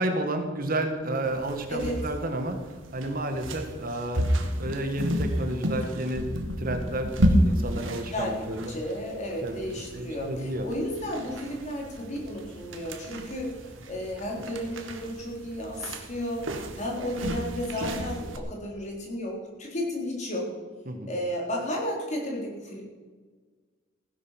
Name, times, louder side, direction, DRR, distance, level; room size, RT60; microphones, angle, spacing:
voice 1, 0.0-2.6 2.9-4.3 4.6-8.8 9.4-9.6 9.9-10.7 20.9-21.1, right 1 dB, 45° right, 6 dB, 1.5 m, -31 dB
sound 1, 1.2-18.4, equal, 85° right, 1.6 m, -32 dB
voice 2, 1.7-2.0 8.1-20.5 21.1-22.8, equal, 35° left, -1 dB, 3.7 m, -33 dB
15.5 x 10.5 x 5.8 m, 1.4 s
head